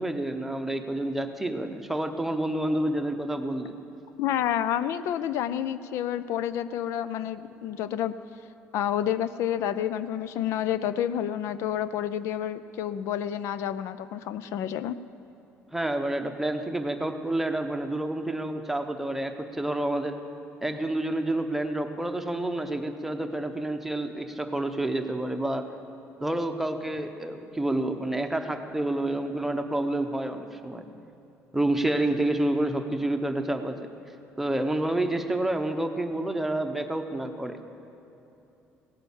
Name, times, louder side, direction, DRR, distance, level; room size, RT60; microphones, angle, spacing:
voice 1, 0.0-3.8 15.7-20.2 20.6-25.7 26.2-30.9 31.5-33.8 34.4-37.6, right 1 dB, 5° right, 6 dB, 0.9 m, -29 dB
voice 2, 4.2-8.1 8.7-14.9, left 10 dB, 75° left, 14 dB, 0.4 m, -29 dB
17.0 x 8.9 x 7.2 m, 2.9 s
cardioid pair, 120°, 5 cm